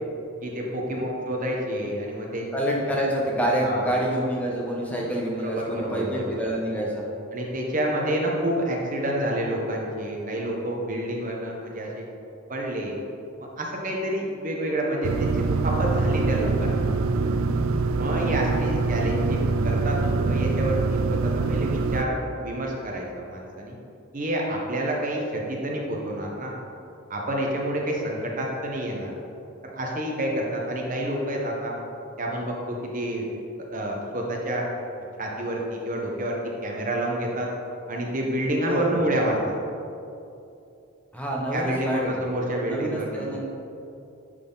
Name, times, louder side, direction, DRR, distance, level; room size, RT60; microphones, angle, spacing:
voice 1, 0.4-2.5 3.6-3.9 5.4-6.4 7.3-12.0 12.5-13.0 13.6-16.9 17.9-23.8 24.1-26.5 27.1-29.1 29.6-31.8 32.2-33.3 33.7-34.6 35.2-37.5 37.9-39.5 41.5-43.3, right 1 dB, 35° right, -1 dB, 1.0 m, -28 dB
voice 2, 2.5-7.1 38.6-38.9 41.1-42.1 42.7-43.4, right 1 dB, 5° left, -3 dB, 0.9 m, -27 dB
sound 1, 15.0-22.0, right 3 dB, 70° right, 0.3 m, -24 dB
9.3 x 4.2 x 3.9 m, 2.7 s
head